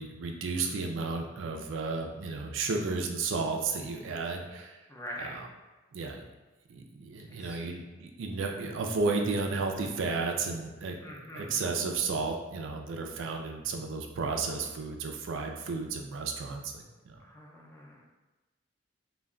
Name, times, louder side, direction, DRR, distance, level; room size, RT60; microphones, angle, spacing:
voice 1, 0.0-4.8 5.2-5.5 5.9-6.2 6.7-11.0 11.3-17.2, right 4 dB, 80° right, 3 dB, 0.4 m, -33 dB
voice 2, 4.9-5.4 7.3-7.8 11.0-11.6 17.2-18.0, equal, 15° left, -2 dB, 0.4 m, -44 dB
2.2 x 2.2 x 3.5 m, 1.2 s
head